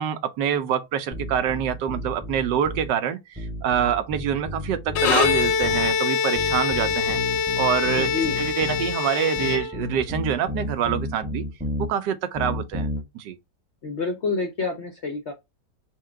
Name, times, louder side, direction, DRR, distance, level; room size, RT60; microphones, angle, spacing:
voice 1, 0.0-7.2 7.6-11.4 11.8-12.9 13.1-13.4, right 9 dB, 75° right, 1.2 m, -26 dB
sound 1, 1.1-2.9 3.4-6.0 6.4-8.9 9.4-11.9 12.4-13.0, left 1 dB, 5° right, 0.6 m, -32 dB
Bowed string instrument, 4.9-10.1, left 6 dB, 80° left, 1.4 m, -24 dB
voice 2, 8.0-8.4 13.8-15.3, left 4 dB, 60° left, 0.7 m, -28 dB
4.6 x 2.2 x 4.4 m
omnidirectional pair, 1.9 m